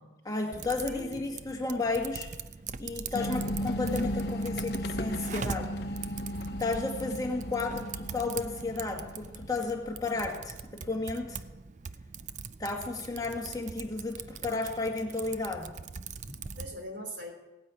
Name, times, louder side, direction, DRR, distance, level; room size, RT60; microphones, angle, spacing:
voice 1, 0.3-2.3 2.8-5.7 6.6-11.4 12.6-15.7, left 3 dB, 20° left, 1 dB, 1.8 m, -33 dB
Typing, 0.5-16.8, right 6 dB, 40° right, 0.5 m, -42 dB
voice 2, 0.9-1.3 16.2-17.3, equal, 70° right, 3 dB, 3.5 m, -42 dB
sound 1, 3.1-9.7, equal, 60° left, 0.9 m, -35 dB
17.5 x 10.0 x 8.2 m, 1.1 s
head